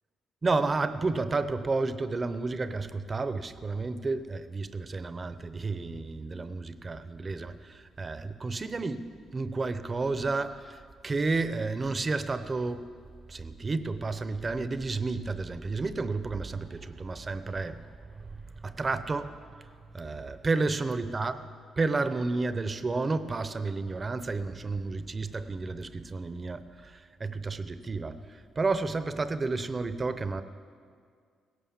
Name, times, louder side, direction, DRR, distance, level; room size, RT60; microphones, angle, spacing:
voice 1, 0.4-10.8 11.0-12.9 13.3-17.9 18.2-19.7 19.9-21.5 21.8-30.4, right 3 dB, 30° right, 12 dB, 0.8 m, -31 dB
17.0 x 11.5 x 7.3 m, 2.2 s
cardioid pair, 90°, 0 cm